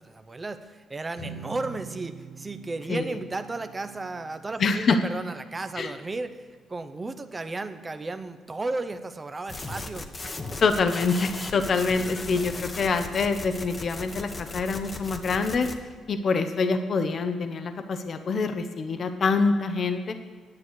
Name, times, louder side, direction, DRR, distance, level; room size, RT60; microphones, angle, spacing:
voice 1, 0.0-10.1, right 3 dB, 25° right, 9 dB, 0.7 m, -34 dB
sound 1, 1.1-7.6, right 5 dB, 85° left, 3.2 m, -46 dB
voice 2, 4.6-5.0 5.8-5.9 10.6-15.7 16.1-20.2, left 4 dB, 50° left, 8 dB, 0.8 m, -25 dB
sound 2, 9.5-15.8, left 2 dB, 30° left, 1.1 m, -37 dB
9.7 x 8.7 x 6.4 m, 1.5 s
cardioid pair, 90°, 0 cm